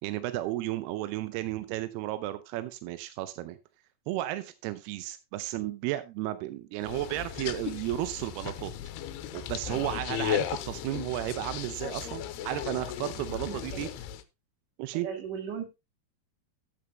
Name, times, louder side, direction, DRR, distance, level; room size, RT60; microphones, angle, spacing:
voice 1, 0.0-3.6 4.1-8.7 9.3-13.9 14.8-15.1, right 15 dB, 80° right, 12 dB, 2.6 m, -33 dB
sound 1, 6.8-14.2, left 10 dB, 80° left, 2.8 m, -36 dB
voice 2, 9.7-10.0 13.4-13.6 14.9-15.6, right 7 dB, 55° right, 5 dB, 3.6 m, -37 dB
13.5 x 8.8 x 2.9 m, 0.24 s
omnidirectional pair, 4.8 m